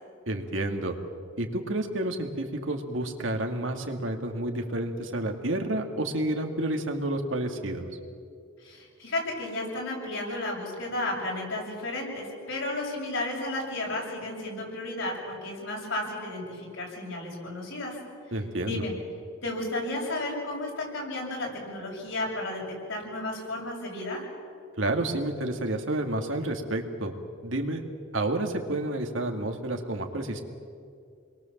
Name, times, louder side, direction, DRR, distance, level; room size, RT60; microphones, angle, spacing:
voice 1, 0.3-1.0 1.4-7.9 18.3-18.9 24.8-27.1 27.4-27.8 28.1-30.4, right 1 dB, 70° right, 4 dB, 2.4 m, -30 dB
voice 2, 8.6-18.0 18.6-18.9 19.4-22.6 22.9-24.2, left 2 dB, 75° left, -2 dB, 7.6 m, -33 dB
29.0 x 22.0 x 7.4 m, 2.4 s
head